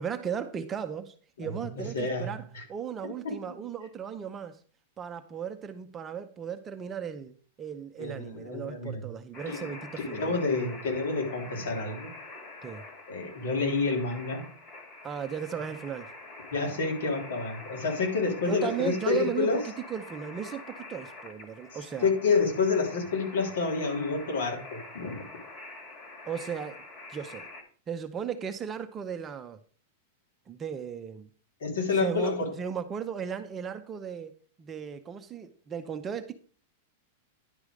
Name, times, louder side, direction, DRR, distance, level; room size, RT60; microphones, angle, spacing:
voice 1, 0.0-4.6 5.0-10.3 12.6-12.8 15.0-16.1 18.5-22.1 26.3-26.8 27.1-27.5 27.9-29.6 30.5-31.3 32.0-36.3, right 8 dB, 15° right, 0.7 m, -36 dB
voice 2, 1.8-2.6 3.0-3.6 8.0-9.1 9.5-9.7 10.1-12.1 13.1-14.4 16.5-19.6 22.0-25.2 31.6-32.5, left 4 dB, 85° left, 3.2 m, -29 dB
sound 1, 9.3-27.6, left 2 dB, 30° left, 1.9 m, -45 dB
10.5 x 5.0 x 5.0 m
supercardioid pair, 165°, 0 cm